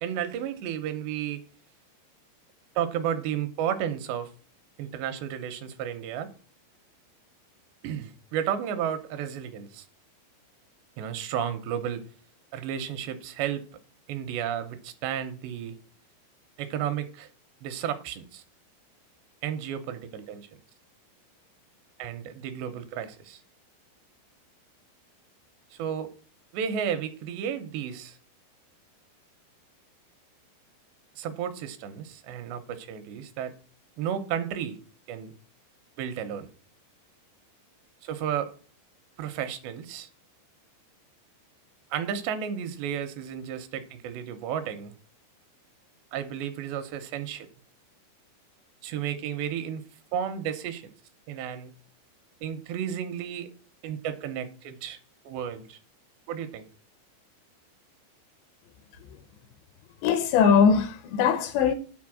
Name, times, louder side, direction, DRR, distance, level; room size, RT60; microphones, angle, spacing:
voice 1, 0.0-1.4 2.8-4.3 4.8-6.3 7.8-9.9 11.0-12.0 12.5-13.7 14.1-15.8 16.6-17.3 17.6-18.4 19.4-20.5 22.0-23.4 25.7-26.1 26.5-28.2 31.2-33.5 34.0-34.8 35.1-35.3 36.0-36.5 38.0-38.5 39.2-40.1 41.9-44.9 46.1-47.5 48.8-49.8 50.1-50.8 51.3-51.7 52.4-53.5 53.8-55.0 55.3-55.8 56.3-56.7, right 9 dB, 80° right, 2.8 m, -32 dB
voice 2, 60.0-61.7, left 6 dB, 80° left, 2.8 m, -21 dB
9.6 x 4.1 x 6.1 m
omnidirectional pair, 5.3 m